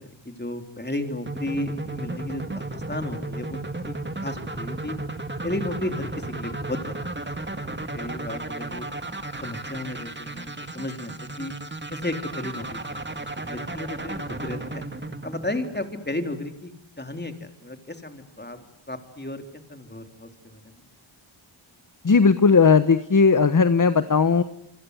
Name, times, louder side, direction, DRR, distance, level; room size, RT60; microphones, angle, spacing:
voice 1, 0.0-3.6 3.9-4.0 4.2-5.0 5.4-6.9 7.5-7.6 7.9-8.9 9.4-11.5 11.9-14.8 15.2-20.8, left 1 dB, 20° left, 6 dB, 3.6 m, -34 dB
sound 1, 1.3-16.2, right 2 dB, 20° right, 2.3 m, -34 dB
voice 2, 22.0-24.4, left 5 dB, 40° left, 12 dB, 1.2 m, -17 dB
27.0 x 24.0 x 8.2 m, 0.76 s
wide cardioid pair, 65°, 48 cm